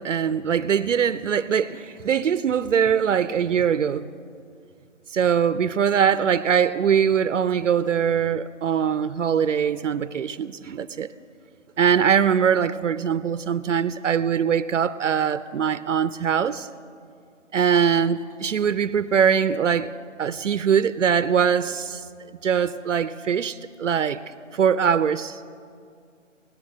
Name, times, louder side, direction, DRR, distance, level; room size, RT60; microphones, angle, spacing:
voice 1, 0.0-4.1 5.1-11.1 11.8-16.7 17.5-19.9 20.2-22.0 22.4-24.2 24.5-25.6, right 7 dB, 70° right, 14 dB, 0.6 m, -22 dB
17.5 x 11.5 x 6.4 m, 2.3 s
hypercardioid pair, 155°, 38 cm